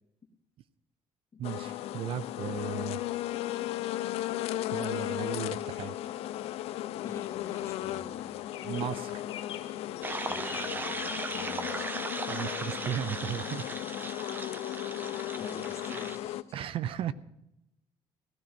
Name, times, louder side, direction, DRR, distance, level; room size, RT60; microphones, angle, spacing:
sound 1, 1.4-16.4, left 14 dB, 80° left, 0.6 m, -36 dB
voice 1, 1.4-3.0 4.7-6.0 8.6-9.2 12.3-13.6 16.5-17.1, right 10 dB, 65° right, 17 dB, 0.6 m, -35 dB
voice 2, 7.0-8.4 10.3-12.0 15.4-16.6, left 4 dB, 25° left, 1 dB, 2.4 m, -47 dB
sound 2, 8.5-13.7, left 8 dB, 65° left, 2.2 m, -47 dB
sound 3, 10.0-16.2, right 3 dB, 20° right, 0.9 m, -38 dB
16.5 x 13.5 x 4.3 m, 0.87 s
cardioid pair, 125°, 10 cm